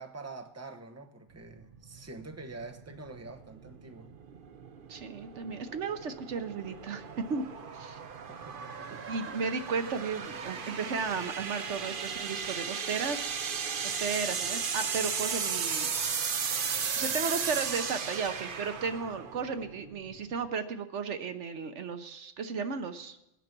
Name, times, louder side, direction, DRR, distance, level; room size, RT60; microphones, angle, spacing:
voice 1, 0.0-4.1 8.3-9.1, right 3 dB, 15° right, 5 dB, 1.0 m, -46 dB
sound 1, 1.4-20.5, right 6 dB, 50° right, 0.9 m, -36 dB
voice 2, 4.9-7.0 7.3-7.5 7.7-8.0 9.1-13.4 13.8-15.9 16.9-23.2, right 5 dB, 75° right, 9 dB, 1.2 m, -34 dB
20.5 x 9.7 x 6.0 m, 0.87 s
omnidirectional pair, 1.2 m